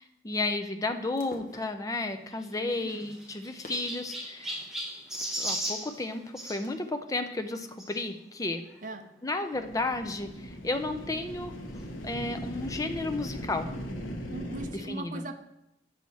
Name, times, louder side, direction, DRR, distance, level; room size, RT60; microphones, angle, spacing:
voice 1, 0.0-4.6 5.4-8.6 9.2-11.5 12.0-13.7 14.7-15.2, left 2 dB, 15° left, 7 dB, 0.4 m, -33 dB
sound 1, 0.9-6.9, left 1 dB, 40° left, 1.0 m, -54 dB
Chirp tweet, 2.3-6.6 7.8-8.0 8.7-8.8 9.0-9.1 10.3-10.4, right 1 dB, ahead, 1.0 m, -36 dB
voice 2, 2.6-3.1 8.8-9.1 14.2-15.3, right 2 dB, 40° right, 7 dB, 0.5 m, -39 dB
sound 2, 9.5-14.7, equal, 85° left, 1.0 m, -39 dB
6.9 x 6.1 x 4.1 m, 0.83 s
head